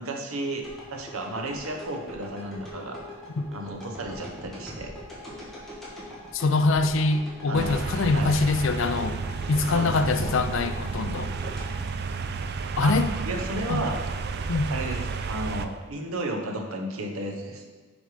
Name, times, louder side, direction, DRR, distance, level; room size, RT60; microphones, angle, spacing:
voice 1, 0.0-3.0 3.5-4.9 7.5-7.7 8.1-8.3 9.7-10.3 12.8-13.0 13.2-14.0 14.7-17.7, right 1 dB, 80° right, 3 dB, 1.0 m, -33 dB
sound 1, 0.6-12.8 13.2-13.3, equal, ahead, 1.7 m, -42 dB
voice 2, 6.3-9.2 9.5-11.3 12.8-13.1 13.7-13.8 14.5-14.7, left 3 dB, 60° left, 10 dB, 0.5 m, -24 dB
sound 2, 7.5-15.7, right 4 dB, 50° right, 0.4 m, -32 dB
6.2 x 5.4 x 5.0 m, 1.4 s
head